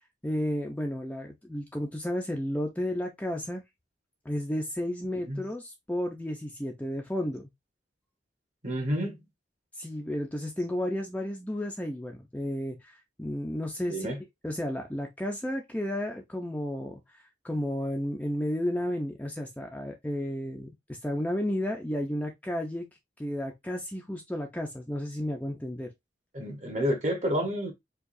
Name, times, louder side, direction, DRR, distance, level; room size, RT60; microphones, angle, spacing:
voice 1, 0.2-3.6 4.2-7.5 9.8-14.1 14.4-22.9 23.2-25.9, left 1 dB, 10° left, 0.4 m, -32 dB
voice 2, 8.6-9.2 13.8-14.2 26.3-27.7, equal, 40° right, 1.1 m, -29 dB
4.6 x 2.3 x 2.5 m
head